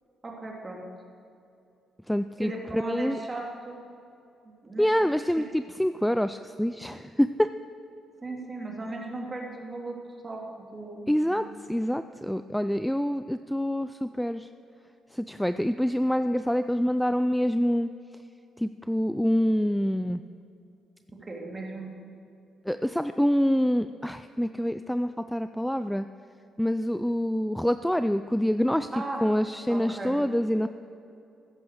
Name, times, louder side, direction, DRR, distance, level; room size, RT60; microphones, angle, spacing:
voice 1, 0.2-0.9 2.4-3.8 4.4-4.9 8.2-10.0 10.2-11.4 21.2-21.9 28.9-29.2 29.7-30.1, right 2 dB, 25° right, 0 dB, 2.8 m, -37 dB
voice 2, 2.1-3.2 4.8-7.5 11.1-14.5 15.1-17.9 18.6-20.2 22.7-26.1 26.6-28.9 29.2-30.7, equal, 5° left, 11 dB, 0.4 m, -26 dB
14.0 x 10.0 x 6.6 m, 2.6 s
cardioid pair, 90°, 0 cm